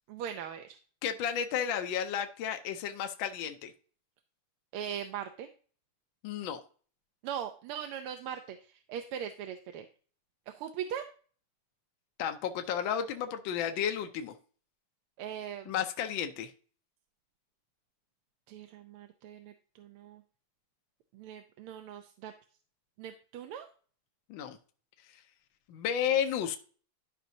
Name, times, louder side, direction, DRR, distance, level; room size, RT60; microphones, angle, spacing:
voice 1, 0.1-0.8 4.7-5.5 7.2-9.9 10.5-11.1 15.2-15.7 18.5-20.2 21.1-22.3 23.0-23.7, right 9 dB, 80° right, 6 dB, 1.5 m, -40 dB
voice 2, 1.0-3.7 6.2-6.6 12.2-14.3 15.7-16.5 24.3-24.6 25.1-25.2 25.7-26.6, left 8 dB, 70° left, 6 dB, 1.3 m, -32 dB
12.0 x 5.2 x 2.7 m, 0.42 s
omnidirectional pair, 2.4 m